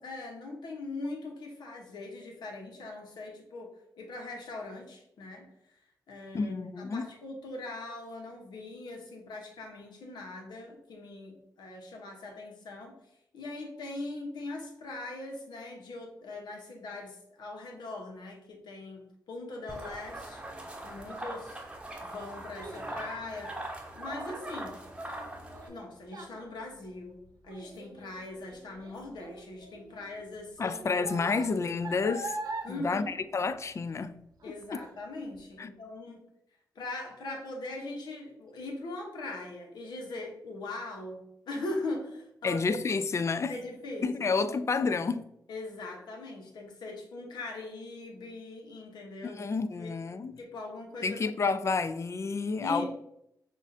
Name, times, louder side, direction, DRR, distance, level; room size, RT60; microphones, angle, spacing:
voice 1, 0.0-5.5 6.1-12.9 13.3-20.4 20.8-21.6 22.0-23.5 23.9-24.8 25.7-30.8 32.6-33.2 34.4-36.2 36.7-42.9 43.5-44.6 45.5-49.5 49.8-49.9 50.4-51.2 52.6-52.9, left 2 dB, 90° left, 1.0 m, -41 dB
voice 2, 6.3-7.1 30.6-32.4 32.7-34.2 34.5-34.8 35.6-35.7 42.4-43.6 44.0-45.3 49.2-50.3 51.0-52.9, left 4 dB, 40° left, 0.3 m, -30 dB
sound 1, 19.7-25.7, right 1 dB, 15° right, 0.9 m, -41 dB
Child speech kid speaking, 21.6-34.1 34.4-34.8 35.3-35.4, right 3 dB, 60° right, 0.7 m, -44 dB
6.1 x 2.5 x 2.6 m
cardioid pair, 65°, 7 cm